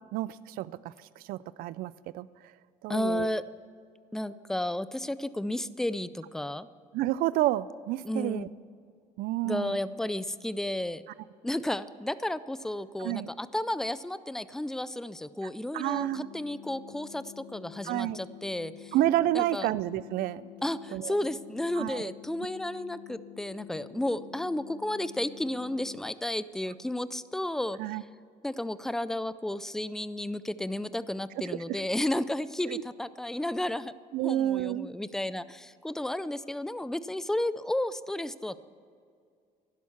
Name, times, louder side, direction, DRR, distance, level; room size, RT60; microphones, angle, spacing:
voice 1, 0.1-2.3 2.8-3.3 6.9-8.5 9.2-9.8 13.0-13.3 15.7-16.3 17.8-18.2 18.9-20.5 20.9-21.1 21.8-22.1 27.8-28.0 31.5-31.8 32.6-32.8 34.1-34.9, right 14 dB, 85° right, 18 dB, 0.4 m, -30 dB
voice 2, 2.9-3.4 4.1-6.7 8.0-8.5 9.4-11.0 11.4-19.0 19.3-19.7 20.6-27.8 28.4-33.9 34.2-38.6, left 1 dB, 5° left, 15 dB, 0.3 m, -32 dB
sound 1, 16.0-26.0, left 14 dB, 70° left, 0.9 m, -48 dB
11.5 x 11.0 x 7.1 m, 2.3 s
cardioid pair, 150°, 15 cm